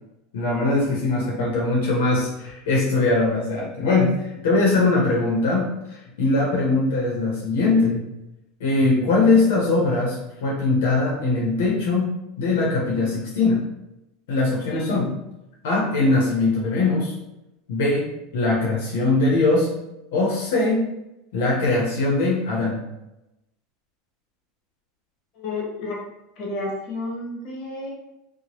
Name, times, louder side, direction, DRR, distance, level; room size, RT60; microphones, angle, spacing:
voice 1, 0.3-5.7 6.2-8.0 8.6-12.1 12.4-13.6 14.3-15.1 15.6-17.1 17.7-19.7 20.1-20.9 21.3-22.8, left 3 dB, 80° left, -3 dB, 0.8 m, -21 dB
voice 2, 25.3-26.0 26.4-27.9, left 2 dB, 45° left, -3 dB, 1.2 m, -31 dB
2.9 x 2.2 x 2.9 m, 0.91 s
supercardioid pair, 125°, 0 cm